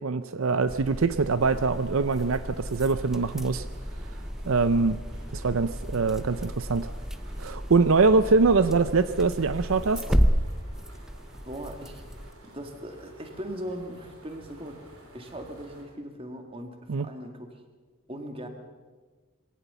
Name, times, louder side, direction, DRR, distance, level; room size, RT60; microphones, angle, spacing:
voice 1, 0.0-3.7 4.5-5.0 5.3-6.9 7.4-10.2 16.9-17.1, right 4 dB, 70° right, 13 dB, 0.6 m, -23 dB
sound 1, 0.7-12.3, equal, ahead, 0.7 m, -32 dB
sound 2, 1.5-15.8, right 1 dB, 90° right, 4.5 m, -52 dB
voice 2, 11.5-12.0 12.5-17.5 18.1-18.5, equal, 25° right, 5 dB, 2.1 m, -39 dB
22.0 x 17.5 x 6.9 m, 1.4 s
head